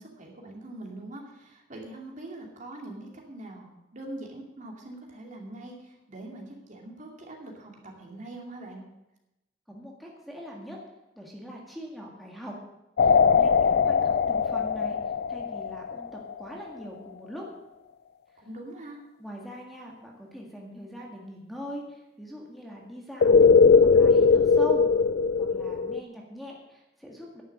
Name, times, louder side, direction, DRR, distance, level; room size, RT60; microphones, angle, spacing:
voice 1, 0.0-8.8 18.4-19.0, right 1 dB, 45° right, 0 dB, 2.6 m, -43 dB
voice 2, 9.7-10.8 11.2-12.6 13.0-15.0 15.3-17.5 19.2-23.4 23.8-24.8 25.4-27.4, equal, ahead, -2 dB, 1.8 m, -41 dB
sound 1, 13.0-16.3 23.2-26.0, left 5 dB, 60° left, 0.4 m, -20 dB
10.5 x 7.1 x 8.6 m, 0.95 s
head